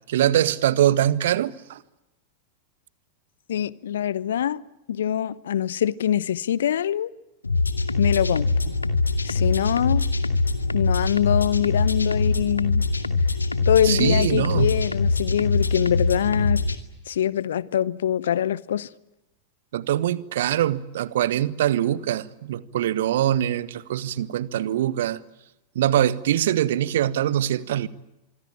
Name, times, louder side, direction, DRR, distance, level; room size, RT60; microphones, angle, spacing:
voice 1, 0.1-1.8 13.8-14.8 19.7-25.2 25.7-27.9, right 11 dB, 60° right, 1.2 m, -23 dB
voice 2, 3.5-4.6 4.9-7.1 8.0-8.5 9.2-10.1 10.7-12.8 13.7-16.6 17.1-18.9, left 10 dB, 60° left, 0.9 m, -24 dB
sound 1, 7.4-16.7, left 3 dB, 80° left, 2.3 m, -23 dB
25.5 x 24.0 x 9.0 m
figure-of-eight pair, 90°, 0 cm